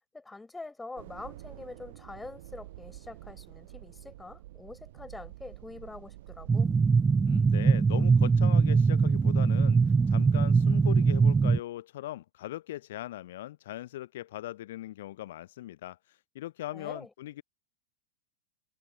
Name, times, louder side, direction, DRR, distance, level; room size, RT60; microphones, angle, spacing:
voice 1, 0.1-6.7 16.7-17.1, left 3 dB, 10° left, 4.6 m, -45 dB
sound 1, 1.0-11.5, right 16 dB, 55° right, 0.8 m, -48 dB
sound 2, 6.5-11.6, right 5 dB, 15° right, 0.3 m, -22 dB
voice 2, 7.2-17.4, left 14 dB, 55° left, 0.5 m, -40 dB
figure-of-eight pair, 90°, 0 cm